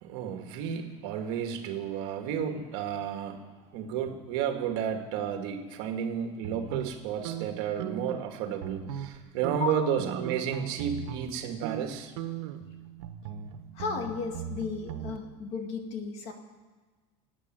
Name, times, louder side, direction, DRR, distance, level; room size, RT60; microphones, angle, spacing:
voice 1, 0.0-3.4 3.7-12.1, right 8 dB, 60° right, 5 dB, 1.8 m, -32 dB
sound 1, 6.4-8.3 8.6-9.2 9.4-11.3 11.6-11.9 12.2-15.2, right 9 dB, 85° right, 1.3 m, -38 dB
voice 2, 13.7-16.3, left 5 dB, 45° left, 4 dB, 2.0 m, -34 dB
18.0 x 8.5 x 9.1 m, 1.3 s
cardioid pair, 170°, 15 cm